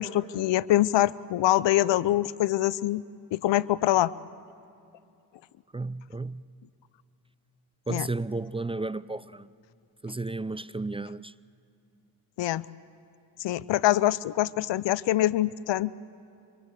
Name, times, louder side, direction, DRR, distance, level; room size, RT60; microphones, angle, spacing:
voice 1, 0.0-3.0 3.3-4.1 7.9-8.1 12.4-12.6 13.4-15.9, left 14 dB, 70° left, 0.8 m, -24 dB
voice 2, 5.7-6.4 7.9-9.5 10.0-11.3, right 2 dB, 15° right, 0.5 m, -33 dB
26.0 x 23.0 x 8.3 m
supercardioid pair, 45°, 45 cm